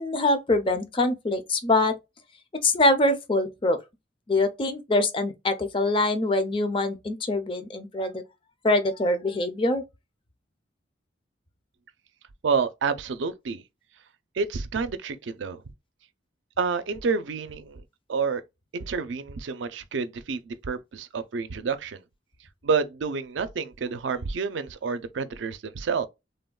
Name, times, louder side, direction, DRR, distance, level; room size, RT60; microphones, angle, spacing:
voice 1, 0.0-1.9 2.6-3.8 4.3-8.2 8.6-9.8, left 2 dB, 30° left, 0.5 m, -24 dB
voice 2, 12.4-13.6 14.4-15.6 16.6-17.8 18.1-18.4 18.7-22.0 22.6-26.1, right 5 dB, 85° right, 0.4 m, -29 dB
3.4 x 2.1 x 2.3 m
head